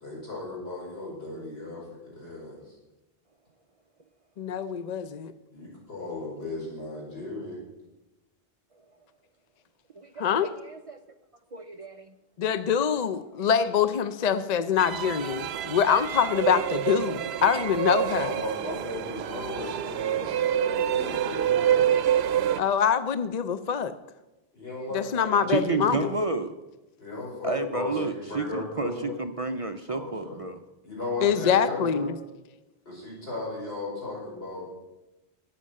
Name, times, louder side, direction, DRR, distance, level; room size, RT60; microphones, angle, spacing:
voice 1, 0.0-2.7 5.5-7.6 18.0-21.9 24.5-26.3 27.0-29.2 29.9-30.4 30.8-32.1 32.9-34.6, left 2 dB, 70° left, -4 dB, 5.4 m, -36 dB
voice 2, 4.4-5.3 10.2-10.5 12.4-18.3 22.6-23.9 24.9-26.1 31.2-32.1, left 7 dB, 50° left, 12 dB, 0.6 m, -24 dB
voice 3, 10.0-11.0 11.5-12.1 20.2-20.3 20.7-20.8 25.5-26.5 27.4-30.6, right 4 dB, 45° right, 8 dB, 0.5 m, -31 dB
sound 1, 14.8-22.6, right 10 dB, 80° right, 0.9 m, -27 dB
12.5 x 8.6 x 6.4 m, 1.0 s
omnidirectional pair, 1.1 m